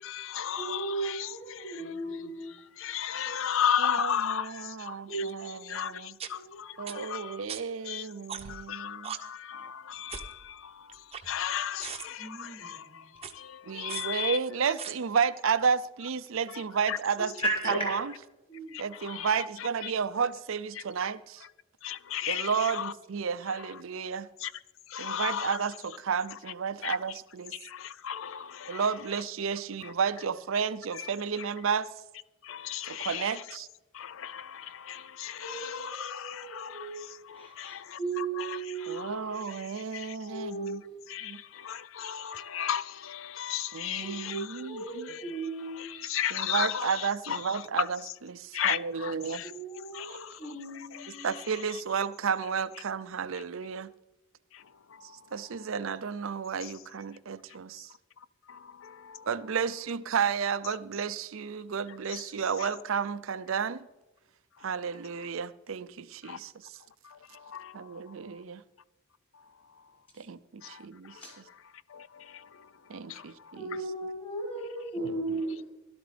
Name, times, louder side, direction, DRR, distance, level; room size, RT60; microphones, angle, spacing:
voice 1, 0.0-1.8 2.8-5.3 5.7-7.4 7.9-8.1 8.5-14.4 14.6-14.7 16.5-16.6 16.9-17.0 18.7-19.3 19.8-19.9 20.8-20.9 21.8-22.9 24.4-24.5 24.9-25.6 26.8-27.0 27.5-28.8 29.8-29.9 31.0-31.1 32.4-33.4 33.9-40.2 41.1-44.6 45.0-47.9 48.5-49.5 49.9-51.3 53.3-53.4 54.5-54.6 54.9-55.1 56.6-56.7 58.5-59.3 62.1-62.2 62.6-62.7 66.2-66.4 67.0-67.9 70.6-71.3 71.9-72.7 73.1-73.5, left 9 dB, 65° left, 0.5 m, -35 dB
voice 2, 0.6-2.5 3.2-3.6 5.1-5.3 6.3-7.0 12.2-13.0 17.2-18.0 18.5-18.8 35.4-37.0 37.3-39.3 40.2-40.9 44.0-44.4 44.7-45.9 49.5-51.3 71.2-71.3 73.5-75.6, right 2 dB, 25° left, 6.0 m, -36 dB
voice 3, 3.8-6.2 6.8-9.1 13.7-17.3 17.7-18.1 18.8-21.4 22.3-24.3 25.0-27.5 28.7-31.9 32.9-33.7 38.9-40.8 41.2-41.4 43.7-45.1 46.3-48.0 48.3-49.4 50.1-50.2 51.2-53.9 55.3-57.9 59.3-63.9 64.6-66.5 67.7-68.6 70.2-71.2 72.9-73.8 75.0-75.2, right 6 dB, 70° right, 0.5 m, -32 dB
sound 1, 5.3-5.4 6.2-6.3 6.9-7.0 7.5-7.6 8.3-8.6 9.0-9.2 10.1-10.3 10.9-11.5 11.8-12.1 13.2-13.3 13.9-14.0 14.8-14.9, right 7 dB, 30° right, 0.8 m, -38 dB
17.0 x 12.5 x 3.4 m
head